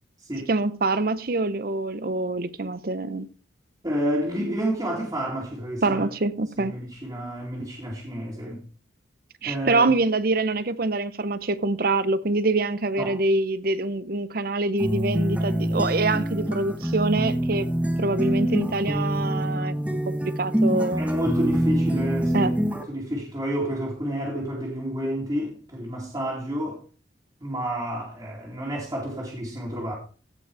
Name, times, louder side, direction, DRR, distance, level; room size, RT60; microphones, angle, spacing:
voice 1, 0.5-3.3 5.8-6.7 9.4-17.7 18.0-19.7 20.1-21.1 22.3-22.5, right 2 dB, 55° right, 0.7 m, -25 dB
voice 2, 3.8-6.0 6.6-8.6 9.4-9.9 13.0-13.2 21.0-22.6 22.9-26.8 27.4-29.9, equal, 20° right, 2.6 m, -30 dB
sound 1, 14.8-22.8, right 1 dB, 5° right, 1.0 m, -25 dB
15.5 x 5.3 x 4.8 m
head